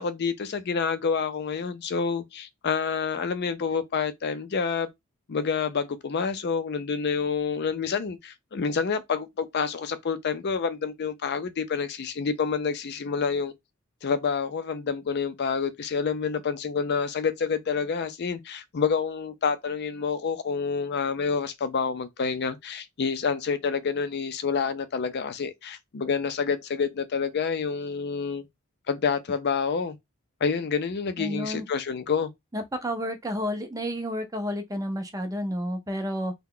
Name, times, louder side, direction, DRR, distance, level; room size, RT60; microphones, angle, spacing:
voice 1, 0.0-4.9 5.3-13.5 14.0-28.5 28.9-30.0 30.4-32.3, left 5 dB, 50° left, 0.5 m, -28 dB
voice 2, 31.2-31.7 32.5-36.3, equal, 15° right, 0.6 m, -30 dB
2.8 x 2.2 x 3.7 m
head